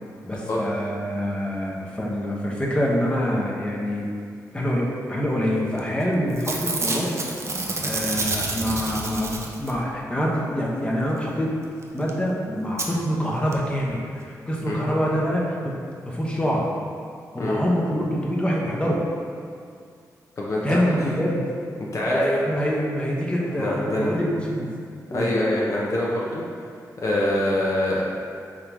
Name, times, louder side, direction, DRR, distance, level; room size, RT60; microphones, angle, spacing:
voice 1, 0.2-4.1 4.5-7.2 7.8-11.6 11.9-16.7 17.3-19.0 20.6-21.5 22.1-24.7 25.1-25.4, equal, 15° left, -4 dB, 0.8 m, -25 dB
Packing tape duct tape / Tearing, 5.8-6.0 6.3-9.9 11.8-11.9 12.1-12.2 12.8-12.9 13.5-13.6 13.8-13.9, right 2 dB, 45° right, 0.5 m, -28 dB
voice 2, 20.4-21.0 21.8-22.2 23.6-24.1 25.1-26.4 27.0-28.1, left 1 dB, 45° left, -4 dB, 0.7 m, -25 dB
3.7 x 2.8 x 4.6 m, 2.3 s
cardioid pair, 70°, 7 cm